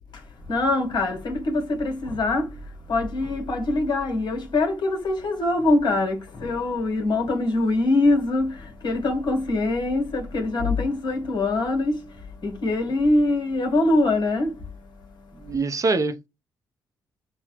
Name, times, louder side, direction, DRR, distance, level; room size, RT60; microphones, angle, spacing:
voice 1, 0.1-15.5, left 2 dB, 55° left, 1.3 m, -24 dB
voice 2, 15.4-16.3, right 3 dB, 40° right, 0.7 m, -24 dB
5.8 x 2.3 x 3.0 m
hypercardioid pair, 50°, 9 cm